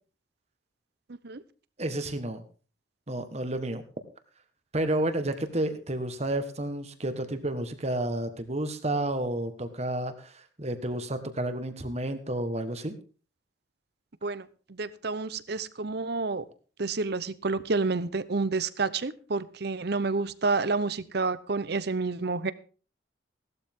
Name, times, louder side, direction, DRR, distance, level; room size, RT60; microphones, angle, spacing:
voice 1, 1.8-2.4 3.1-3.8 4.7-12.9, right 1 dB, 35° right, 9 dB, 1.5 m, -31 dB
voice 2, 14.2-16.5 16.8-22.5, right 3 dB, 60° right, 16 dB, 0.8 m, -29 dB
17.0 x 12.5 x 3.7 m, 0.37 s
head